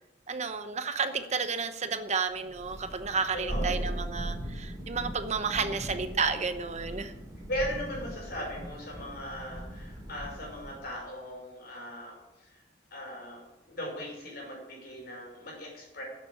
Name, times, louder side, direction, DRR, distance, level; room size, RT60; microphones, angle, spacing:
voice 1, 0.3-7.1, right 5 dB, 40° right, 9 dB, 0.9 m, -31 dB
Thunder, 2.5-10.9, right 1 dB, 20° right, 3.2 m, -39 dB
voice 2, 3.5-4.0 6.8-7.1 7.5-12.6 12.9-13.4 13.7-16.0, equal, 55° left, -4 dB, 5.4 m, -38 dB
11.5 x 7.4 x 8.7 m, 1.0 s
head